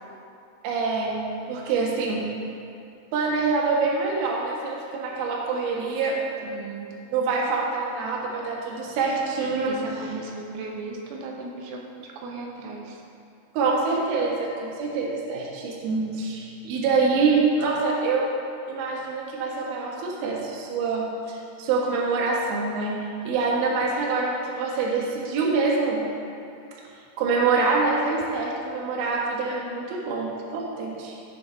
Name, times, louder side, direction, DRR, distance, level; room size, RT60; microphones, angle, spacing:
voice 1, 0.6-1.1 1.5-2.2 3.1-6.1 7.1-10.1 13.5-18.3 18.7-23.0 23.2-26.0 27.2-31.1, right 4 dB, 65° right, -3 dB, 2.8 m, -25 dB
voice 2, 6.4-7.0 9.7-13.0, right 4 dB, 85° right, -1 dB, 3.5 m, -37 dB
17.5 x 6.3 x 3.5 m, 2.6 s
omnidirectional pair, 5.9 m